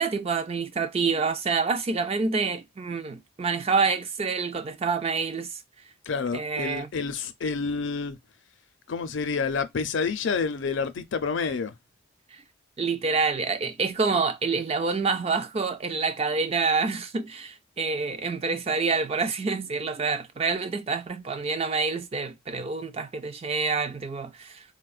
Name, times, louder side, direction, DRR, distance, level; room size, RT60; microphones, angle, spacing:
voice 1, 0.0-5.5 6.3-6.9 12.3-12.4 12.8-24.6, right 4 dB, 30° right, 0.3 m, -27 dB
voice 2, 6.1-8.2 8.9-11.7, left 5 dB, 55° left, 0.5 m, -28 dB
4.1 x 2.2 x 2.4 m
head